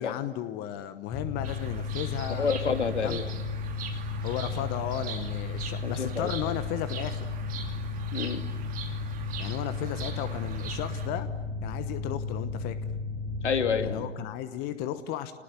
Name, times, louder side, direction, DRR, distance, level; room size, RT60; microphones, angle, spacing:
voice 1, 0.0-2.5 2.9-3.2 4.2-7.3 9.4-11.3 11.6-12.8 13.8-15.3, left 11 dB, 25° left, 11 dB, 1.2 m, -34 dB
Mechanical fan, 1.1-13.9, left 4 dB, 5° left, 6.5 m, -34 dB
Bird vocalization bird call bird song, 1.4-11.1, right 7 dB, 20° right, 2.9 m, -43 dB
voice 2, 2.4-3.2 5.8-6.3 8.1-8.4 13.4-14.1, left 6 dB, 70° left, 7 dB, 2.6 m, -28 dB
29.5 x 20.0 x 9.9 m, 1.4 s
figure-of-eight pair, 120°, 36 cm